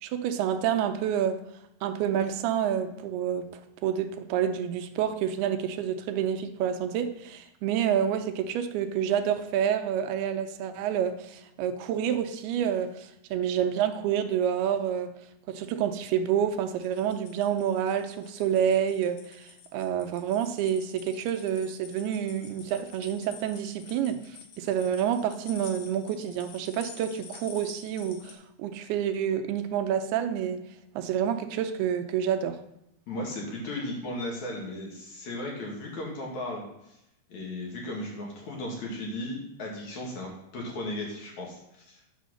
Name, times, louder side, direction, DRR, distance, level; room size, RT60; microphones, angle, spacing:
voice 1, 0.0-1.4 1.8-3.5 3.8-15.1 15.5-24.2 24.6-30.6 31.0-32.6, right 9 dB, 80° right, 7 dB, 2.5 m, -28 dB
sound 1, 16.7-28.3, left 6 dB, 70° left, 2.5 m, -49 dB
voice 2, 33.1-37.0 37.3-42.1, left 1 dB, 50° left, -2 dB, 3.0 m, -36 dB
9.3 x 4.5 x 6.4 m, 0.85 s
omnidirectional pair, 4.7 m